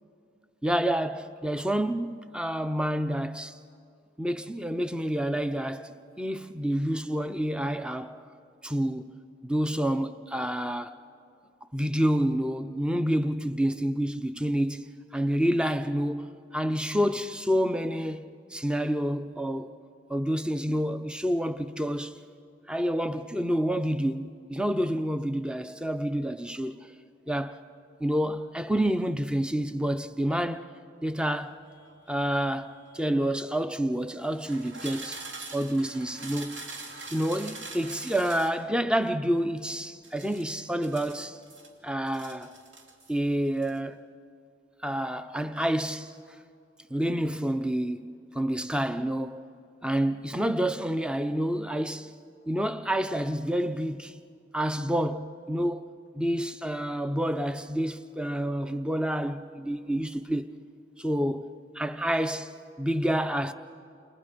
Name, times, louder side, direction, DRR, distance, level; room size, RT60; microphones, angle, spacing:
voice 1, 0.6-3.5 4.2-5.9 6.2-8.2 8.6-9.1 9.4-11.0 11.7-19.8 20.1-22.2 22.7-26.9 27.3-27.6 28.0-30.7 31.0-31.6 32.1-35.2 35.5-36.7 37.1-41.4 41.8-42.5 43.1-44.0 44.8-46.1 46.9-49.5 49.8-52.1 52.5-54.2 54.5-55.8 56.1-60.5 61.0-63.5, equal, 5° right, 0.6 m, -28 dB
sound 1, 31.4-33.3 34.2-38.6 40.0-41.7 42.1-43.2 43.5-43.8, right 3 dB, 75° right, 2.7 m, -44 dB
29.5 x 28.5 x 5.2 m
head